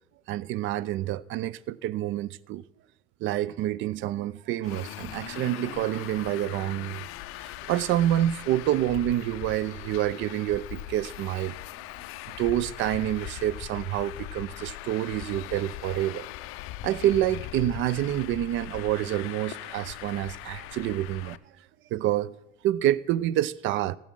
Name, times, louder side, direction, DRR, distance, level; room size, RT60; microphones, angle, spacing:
voice 1, 0.3-2.6 3.2-7.1 7.7-11.5 12.4-16.3 16.8-21.4 21.9-22.3 22.6-24.0, right 13 dB, 40° right, 0.4 m, -27 dB
Traffic noise roadway noise, 4.6-21.4, left 15 dB, 45° left, 0.5 m, -40 dB
16.5 x 7.5 x 3.7 m
hypercardioid pair, 70°, 32 cm